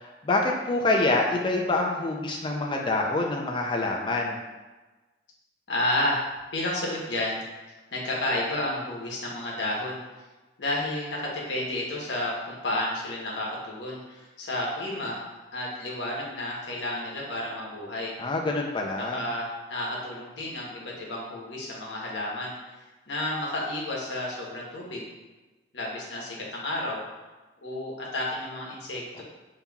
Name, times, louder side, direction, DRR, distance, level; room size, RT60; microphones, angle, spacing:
voice 1, 0.2-4.4 18.2-19.2, left 2 dB, 25° left, 1 dB, 0.4 m, -26 dB
voice 2, 5.7-6.2 6.5-7.4 7.9-10.0 10.6-15.2 15.5-18.1 19.0-22.8 23.1-25.0 25.7-27.0 27.6-29.2, left 1 dB, 85° left, -3 dB, 1.0 m, -31 dB
5.3 x 2.9 x 2.3 m, 1.2 s
head